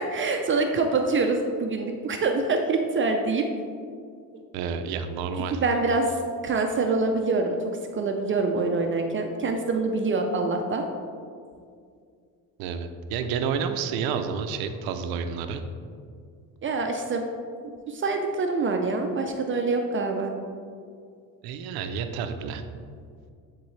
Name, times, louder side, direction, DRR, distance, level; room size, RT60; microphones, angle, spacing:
voice 1, 0.0-3.4 4.3-4.4 5.5-7.6 7.9-10.8 16.6-17.3 17.9-20.3, right 3 dB, 35° right, 3 dB, 0.5 m, -25 dB
voice 2, 4.5-5.6 12.6-15.6 21.4-22.6, right 6 dB, 90° right, 8 dB, 0.6 m, -30 dB
10.0 x 3.7 x 3.2 m, 2.2 s
cardioid pair, 105°, 36 cm